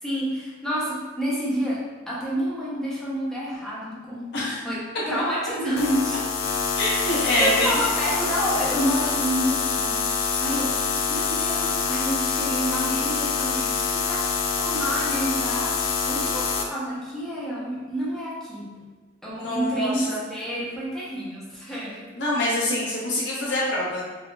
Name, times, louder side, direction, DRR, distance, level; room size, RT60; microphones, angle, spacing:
voice 1, 0.0-1.8 2.1-4.8 5.1-6.2 7.0-14.2 14.6-15.8 16.0-18.7 19.2-22.1, equal, ahead, -8 dB, 0.8 m, -29 dB
sound 1, 5.8-16.6, left 5 dB, 85° left, 0.4 m, -26 dB
voice 2, 6.8-7.7 19.3-20.2 22.1-24.0, left 1 dB, 65° left, -5 dB, 1.0 m, -25 dB
3.5 x 2.8 x 2.4 m, 1.3 s
head